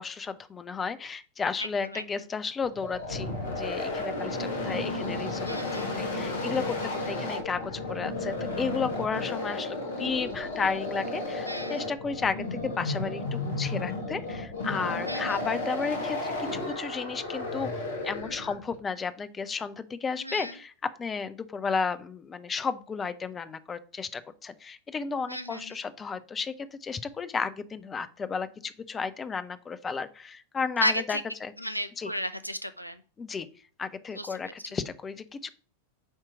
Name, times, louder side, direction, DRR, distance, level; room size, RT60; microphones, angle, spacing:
voice 1, 0.0-5.5 5.7-6.8 7.1-7.6 7.9-17.7 18.0-20.7 21.0-31.5 32.0-32.1 33.2-33.5 33.8-35.5, left 5 dB, 20° left, 13 dB, 0.6 m, -33 dB
voice 2, 1.6-2.1 5.4-6.1 11.5-11.9 15.0-15.4 20.2-20.5 25.3-25.8 30.8-31.2 31.6-33.0 34.1-34.5, equal, 90° right, 11 dB, 0.5 m, -34 dB
sound 1, 2.6-18.7, left 2 dB, 60° left, 1.4 m, -33 dB
8.9 x 3.0 x 4.8 m, 0.40 s
figure-of-eight pair, 90°, 0 cm